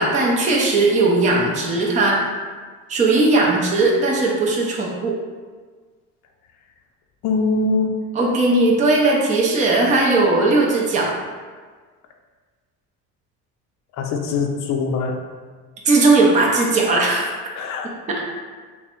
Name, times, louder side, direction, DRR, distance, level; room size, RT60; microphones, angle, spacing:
voice 1, 0.0-2.3 2.9-5.1 8.2-11.1 15.9-17.3 18.1-18.2, right 2 dB, 20° right, -2 dB, 0.5 m, -18 dB
voice 2, 7.2-8.0 14.0-15.2 17.6-17.9, left 3 dB, 50° left, 2 dB, 0.5 m, -22 dB
3.4 x 2.1 x 4.3 m, 1.5 s
cardioid pair, 150°, 35 cm